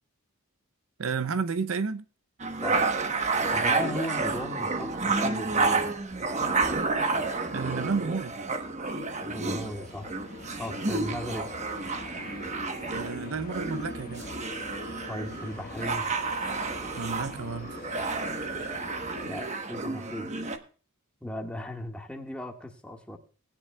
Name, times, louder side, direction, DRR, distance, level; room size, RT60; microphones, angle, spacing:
voice 1, 1.0-2.0 7.5-8.3 12.9-14.3 17.0-17.7, right 5 dB, 65° right, 0.6 m, -31 dB
sound 1, 2.4-20.6, right 3 dB, 30° right, 1.1 m, -30 dB
voice 2, 3.5-6.0 9.2-10.1 10.6-11.5 15.1-16.1 19.2-20.4 21.2-23.2, left 1 dB, 5° left, 1.6 m, -37 dB
sound 2, 8.6-19.3, left 2 dB, 40° left, 1.5 m, -45 dB
19.5 x 10.0 x 2.3 m
head